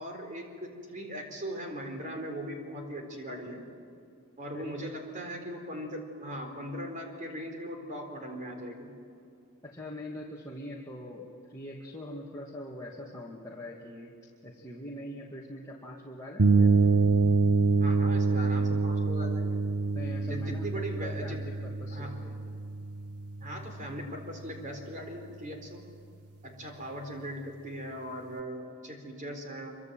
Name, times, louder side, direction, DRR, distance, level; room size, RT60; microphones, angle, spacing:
voice 1, 0.0-3.6 4.4-8.9 17.8-19.6 20.2-21.4 21.9-22.1 23.4-25.8 26.4-29.7, equal, 35° right, 3 dB, 4.3 m, -39 dB
voice 2, 9.6-14.1 14.4-16.7 19.9-22.6, left 1 dB, 15° left, -4 dB, 2.3 m, -43 dB
sound 1, 16.4-24.1, right 3 dB, 85° right, 1.1 m, -26 dB
26.0 x 24.5 x 7.7 m, 2.5 s
head